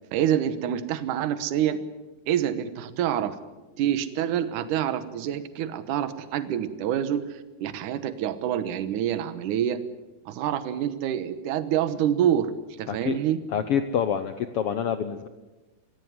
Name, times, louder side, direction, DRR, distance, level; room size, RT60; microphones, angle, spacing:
voice 1, 0.1-1.8 2.3-3.4 3.8-9.8 10.3-12.5 12.8-13.4, right 10 dB, 75° right, 12 dB, 2.6 m, -27 dB
voice 2, 12.9-13.2 13.5-15.3, left 8 dB, 80° left, 10 dB, 1.3 m, -27 dB
23.5 x 16.0 x 9.4 m, 1.1 s
omnidirectional pair, 3.8 m